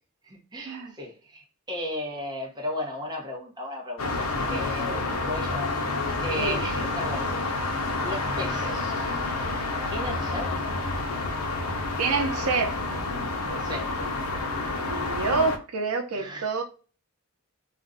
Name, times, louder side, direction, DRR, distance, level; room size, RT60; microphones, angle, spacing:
voice 1, 0.2-5.7 6.2-7.7 8.0-9.1 9.9-10.6 13.6-13.9 16.1-16.5, left 1 dB, 20° right, 0.8 m, -35 dB
sound 1, 4.0-15.6, left 2 dB, 75° left, 0.6 m, -29 dB
voice 2, 12.0-12.8 14.9-16.6, right 4 dB, 80° right, 0.6 m, -27 dB
2.5 x 2.2 x 3.7 m
head